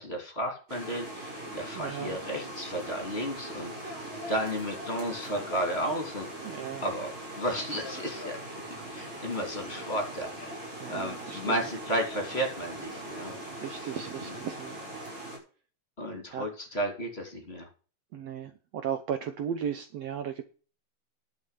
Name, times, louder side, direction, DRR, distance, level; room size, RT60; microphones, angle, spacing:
voice 1, 0.0-6.3 6.8-7.1 7.4-8.4 8.9-10.5 10.9-13.3 13.7-13.9 14.2-14.3 16.0-17.7, equal, 20° left, 3 dB, 3.1 m, -33 dB
sound 1, 0.7-15.4, right 1 dB, 40° right, 6.2 m, -41 dB
voice 2, 1.8-2.2 6.4-6.8 10.8-11.5 13.6-14.8 16.3-16.5 18.1-18.5 18.8-20.4, right 8 dB, 65° right, 9 dB, 1.8 m, -35 dB
11.0 x 5.8 x 8.2 m, 0.38 s
omnidirectional pair, 3.4 m